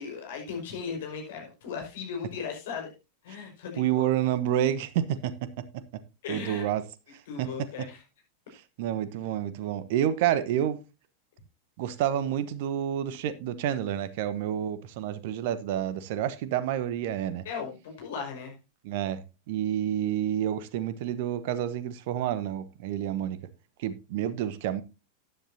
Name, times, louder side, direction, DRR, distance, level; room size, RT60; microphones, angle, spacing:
voice 1, 0.0-2.9 3.2-4.1 6.2-6.6 7.3-8.0 17.4-18.5, left 6 dB, 55° left, 5.3 m, -37 dB
voice 2, 3.8-5.6 5.9-6.0 6.3-6.8 7.1-7.9 8.8-10.8 11.8-17.4 18.8-23.4 23.8-24.8, right 11 dB, 50° right, 1.1 m, -29 dB
13.5 x 10.0 x 2.7 m
figure-of-eight pair, 90°, 0 cm